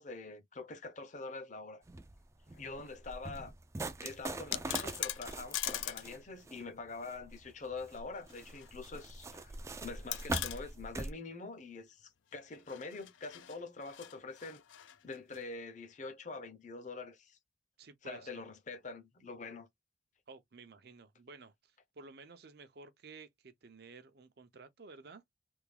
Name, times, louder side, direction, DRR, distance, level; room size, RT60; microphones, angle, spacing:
voice 1, 0.0-1.8 2.5-3.5 4.0-14.6 15.0-17.4 18.0-19.7, left 3 dB, 40° left, 0.6 m, -45 dB
sound 1, 1.8-11.1, right 2 dB, 15° right, 0.3 m, -43 dB
sound 2, 4.3-6.1 6.4-6.5 8.0-8.7 9.0-9.1 10.1-10.6 12.5-15.4, left 13 dB, 85° left, 0.4 m, -41 dB
voice 2, 17.8-18.3 20.3-25.2, right 4 dB, 55° right, 0.6 m, -54 dB
3.5 x 2.3 x 3.2 m
head